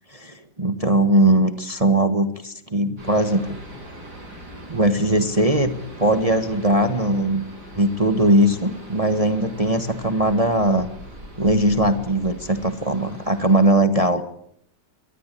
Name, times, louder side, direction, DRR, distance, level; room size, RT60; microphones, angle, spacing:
voice 1, 0.1-3.6 4.7-5.7 6.0-7.4 7.7-10.9 11.4-14.2, right 1 dB, 20° right, 8 dB, 1.4 m, -20 dB
sound 1, 3.0-13.7, equal, 65° right, 8.6 m, -41 dB
24.0 x 19.0 x 8.4 m, 0.72 s
omnidirectional pair, 1.9 m